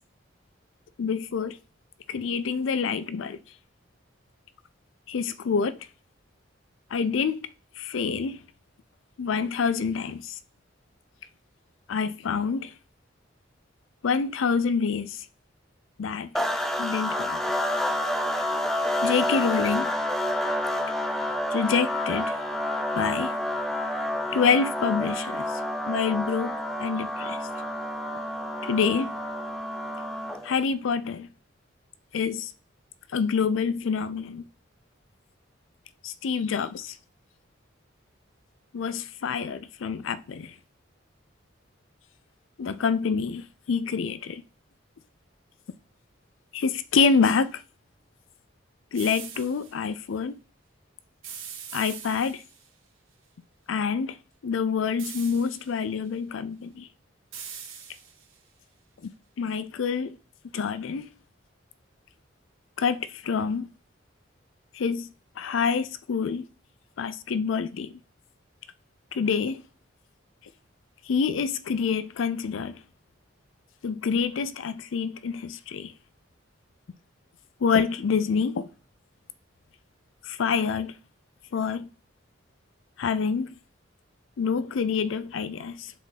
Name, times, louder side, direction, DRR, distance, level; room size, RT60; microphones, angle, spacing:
voice 1, 1.0-1.6 2.1-3.4 5.1-5.9 6.9-7.4 7.8-8.4 9.2-10.4 11.9-12.7 14.0-15.3 16.0-16.3 16.8-17.4 19.0-19.9 21.5-22.4 22.9-23.4 24.3-25.6 25.9-27.4 28.6-29.1 30.4-31.3 32.1-32.5 33.1-34.5 36.0-37.0 38.7-40.5 42.6-44.4 46.5-47.6 48.9-50.4 51.7-52.4 53.7-54.2 54.4-56.9 59.0-59.1 59.4-60.2 60.5-61.1 62.8-63.7 64.7-65.1 65.4-66.5 67.0-68.0 69.1-69.6 71.1-72.8 73.8-75.9 77.6-78.7 80.2-81.0 81.5-81.9 83.0-83.6 84.4-85.9, left 5 dB, 75° left, 0.4 m, -27 dB
sound 1, 16.3-30.5, left 1 dB, ahead, 0.7 m, -29 dB
sound 2, 48.9-49.7 51.2-52.7 55.0-55.8 57.3-58.4, right 7 dB, 90° right, 2.0 m, -41 dB
7.2 x 4.5 x 4.0 m
head